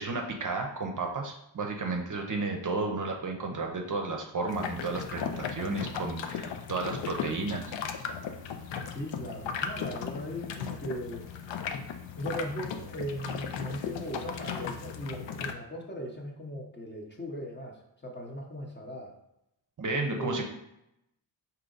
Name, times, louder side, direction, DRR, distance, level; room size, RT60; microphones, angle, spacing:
voice 1, 0.0-7.6 19.8-20.4, right 3 dB, 40° right, 2 dB, 0.6 m, -32 dB
sound 1, 4.5-15.5, left 7 dB, 70° left, 0.6 m, -37 dB
voice 2, 8.9-11.2 12.2-19.1 20.1-20.4, equal, 25° left, 0 dB, 0.8 m, -38 dB
4.7 x 2.9 x 3.9 m, 0.84 s
wide cardioid pair, 110°, 46 cm